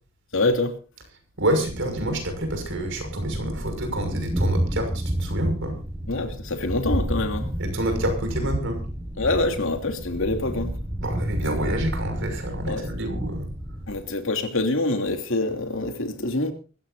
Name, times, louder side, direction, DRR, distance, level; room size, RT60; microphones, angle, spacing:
voice 1, 0.3-0.8 6.1-7.5 9.2-10.8 12.7-12.9 13.9-16.5, left 2 dB, 65° left, 2.8 m, -25 dB
voice 2, 1.4-4.9 5.2-5.8 7.6-8.8 11.0-13.5, right 1 dB, 55° right, 6.0 m, -28 dB
Thunder, 1.6-14.1, right 1 dB, 15° right, 1.5 m, -30 dB
24.5 x 14.5 x 2.6 m
head